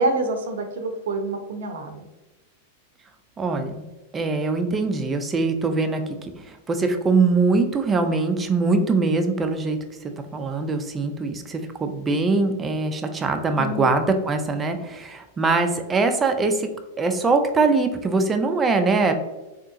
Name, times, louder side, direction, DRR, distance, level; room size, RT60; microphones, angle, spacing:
voice 1, 0.0-2.0 13.6-13.9, right 2 dB, 70° right, 6 dB, 0.6 m, -26 dB
voice 2, 3.4-3.7 4.1-9.8 10.3-16.7 17.0-19.1, right 3 dB, 20° right, 6 dB, 0.5 m, -22 dB
3.6 x 2.8 x 2.6 m, 1.1 s
hypercardioid pair, 105°, 0 cm